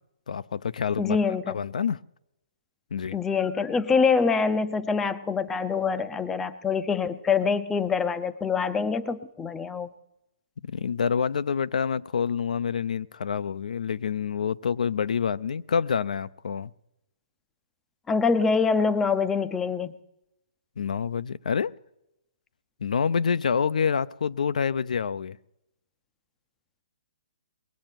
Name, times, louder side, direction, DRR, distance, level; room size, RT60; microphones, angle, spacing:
voice 1, 0.3-1.2 1.5-2.0 2.9-3.2 10.7-16.7 20.8-21.7 22.8-25.4, left 6 dB, 70° left, 0.5 m, -27 dB
voice 2, 1.0-1.6 3.1-9.9 18.1-20.0, left 5 dB, 10° left, 0.5 m, -25 dB
20.5 x 7.6 x 9.0 m
hypercardioid pair, 160°, 4 cm